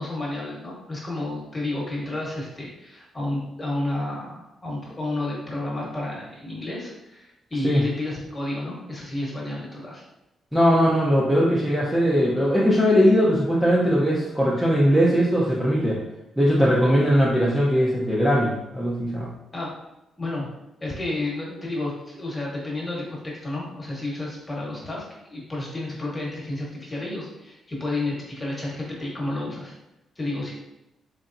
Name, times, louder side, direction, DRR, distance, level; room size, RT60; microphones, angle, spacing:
voice 1, 0.0-10.0 19.5-19.7 20.2-20.5 20.8-25.0 25.3-29.7 30.2-30.5, left 2 dB, 20° left, -4 dB, 1.2 m, -31 dB
voice 2, 10.5-16.0 16.4-19.3, equal, 5° right, -7 dB, 0.7 m, -20 dB
4.0 x 3.3 x 2.6 m, 0.89 s
cardioid pair, 135°, 0 cm